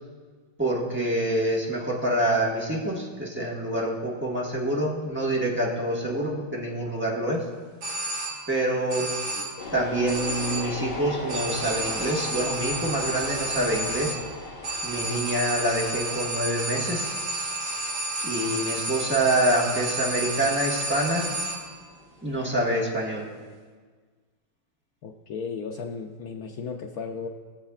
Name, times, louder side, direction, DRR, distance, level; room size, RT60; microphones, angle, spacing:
voice 1, 0.6-7.4 8.5-9.1 9.7-14.2 14.8-17.2 18.2-21.3 22.2-23.3, right 1 dB, 5° right, -4 dB, 1.1 m, -26 dB
sound 1, 7.8-8.6 8.9-9.7 10.1-10.9 11.3-21.8, right 2 dB, 55° right, 1.5 m, -31 dB
voice 2, 9.3-9.7 25.0-27.3, left 5 dB, 90° left, 2 dB, 0.8 m, -35 dB
sound 2, 9.6-22.7, left 2 dB, 60° left, 1.9 m, -39 dB
20.5 x 7.2 x 2.4 m, 1.5 s
omnidirectional pair, 2.2 m